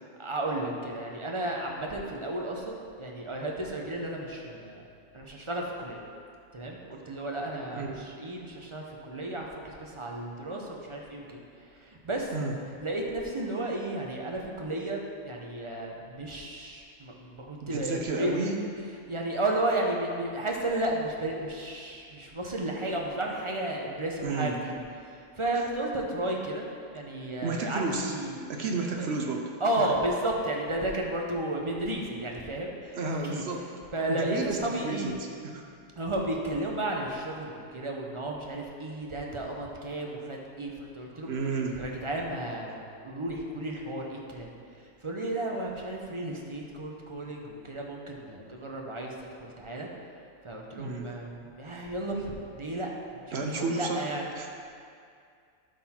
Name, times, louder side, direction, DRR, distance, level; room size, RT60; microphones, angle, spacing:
voice 1, 0.2-4.8 5.1-6.0 6.5-11.4 11.8-12.3 12.8-15.0 15.2-18.4 19.1-24.7 25.0-28.4 29.0-29.1 29.6-33.0 33.3-33.4 33.9-35.1 36.0-41.3 41.8-42.8 43.0-44.5 45.0-49.1 49.4-49.9 50.4-52.9 53.2-53.3 53.5-54.2, right 1 dB, 30° right, -1 dB, 0.7 m, -33 dB
voice 2, 7.7-8.0 12.3-12.6 17.6-18.6 24.2-24.6 27.4-28.2 28.5-29.5 29.8-29.9 32.9-33.7 34.1-35.6 41.2-41.8 50.8-51.1 53.3-54.1 54.3-54.5, right 3 dB, 60° right, 2 dB, 0.9 m, -32 dB
11.5 x 4.0 x 4.3 m, 2.3 s
omnidirectional pair, 1.3 m